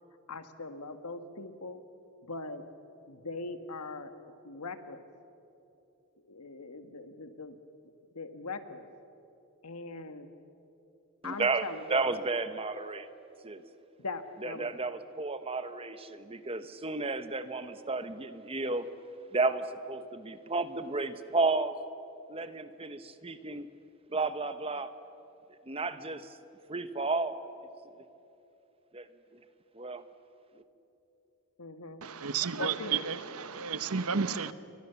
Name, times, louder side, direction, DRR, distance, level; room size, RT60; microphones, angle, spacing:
voice 1, 0.3-1.8 2.3-2.6 3.1-5.0 6.2-7.5 8.1-8.9 9.6-10.3 11.2-12.1 14.0-14.7 31.6-32.0 32.6-33.0, left 3 dB, 85° left, 8 dB, 1.7 m, -41 dB
voice 2, 11.2-13.1 13.4-13.6 14.4-18.9 19.3-21.7 22.3-23.7 24.1-24.9 25.7-26.2 26.7-27.5 28.9-29.1 29.7-30.0, right 3 dB, 25° right, 11 dB, 1.1 m, -32 dB
voice 3, 32.0-34.5, right 6 dB, 75° right, 13 dB, 1.0 m, -32 dB
29.5 x 24.0 x 7.1 m, 2.9 s
head